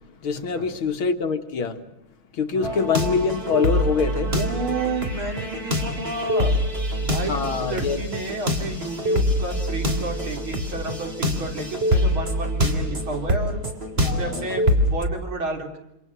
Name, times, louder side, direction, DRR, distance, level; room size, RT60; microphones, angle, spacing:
voice 1, 0.2-1.8 2.3-4.4 7.3-8.0 14.0-14.5, left 5 dB, 75° left, 2.5 m, -25 dB
voice 2, 2.5-2.9 4.3-6.5 7.0-13.6 14.0-15.8, right 3 dB, 75° right, 4.7 m, -31 dB
sound 1, 2.6-15.0, equal, 30° right, 3.6 m, -25 dB
28.0 x 26.5 x 6.2 m
omnidirectional pair, 2.3 m